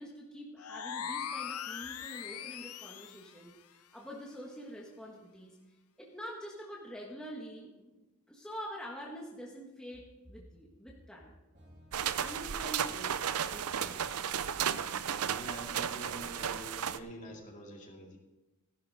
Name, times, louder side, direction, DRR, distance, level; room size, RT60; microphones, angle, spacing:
voice 1, 0.0-3.5 3.9-5.6 6.0-8.0 8.3-11.4 12.2-14.6, equal, 5° left, -3 dB, 1.4 m, -46 dB
sound 1, 0.6-3.3, left 8 dB, 85° left, 0.7 m, -40 dB
sound 2, 11.5-17.4, equal, 35° right, 2.4 m, -59 dB
sound 3, 11.9-17.0, right 8 dB, 80° right, 0.5 m, -34 dB
voice 2, 15.2-18.2, equal, 35° left, 0 dB, 2.4 m, -47 dB
16.0 x 11.5 x 4.1 m, 1.1 s
head